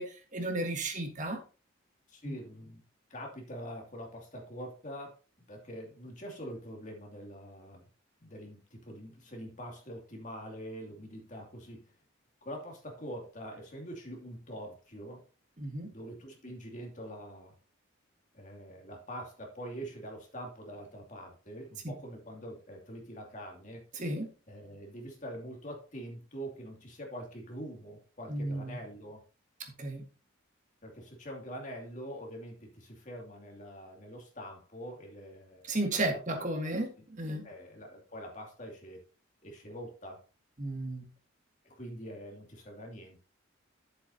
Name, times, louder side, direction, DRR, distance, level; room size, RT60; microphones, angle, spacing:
voice 1, 0.0-1.4 2.2-2.4 15.6-15.9 21.8-21.9 23.9-24.3 28.3-28.8 29.8-30.0 35.7-37.5 40.6-41.0, right 1 dB, 35° right, 4 dB, 1.6 m, -34 dB
voice 2, 2.1-2.8 3.1-5.2 5.5-7.9 8.2-11.8 12.4-15.2 15.9-17.5 18.3-23.8 24.5-29.2 30.8-35.7 36.0-36.8 37.4-39.0 39.4-40.2 41.6-43.2, equal, 35° left, 0 dB, 2.6 m, -44 dB
10.5 x 7.9 x 2.8 m, 0.34 s
head